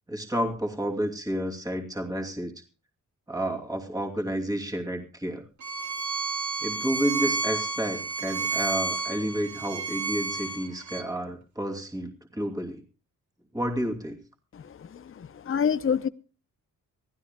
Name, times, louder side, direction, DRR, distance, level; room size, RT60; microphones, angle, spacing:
voice 1, 0.1-2.5 3.3-5.4 6.6-12.8 13.5-14.2, equal, 10° right, 3 dB, 2.8 m, -30 dB
Bowed string instrument, 5.6-11.0, right 3 dB, 55° right, 2.1 m, -31 dB
voice 2, 14.5-16.1, left 7 dB, 40° left, 14 dB, 0.7 m, -28 dB
25.0 x 15.5 x 2.3 m, 0.33 s
cardioid pair, 95°, 34 cm